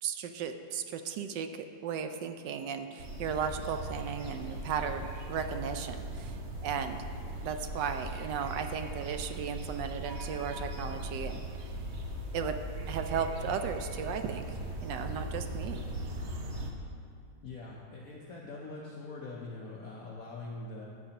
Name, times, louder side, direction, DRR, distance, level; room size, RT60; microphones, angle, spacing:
voice 1, 0.0-7.0 7.4-11.4 12.3-12.6 12.9-14.5 14.8-15.8, right 7 dB, 75° right, 7 dB, 1.2 m, -35 dB
sound 1, 3.0-16.7, right 1 dB, 50° right, 0.9 m, -39 dB
voice 2, 17.4-20.8, left 3 dB, 55° left, -3 dB, 1.1 m, -43 dB
13.0 x 8.7 x 2.9 m, 2.6 s
omnidirectional pair, 2.1 m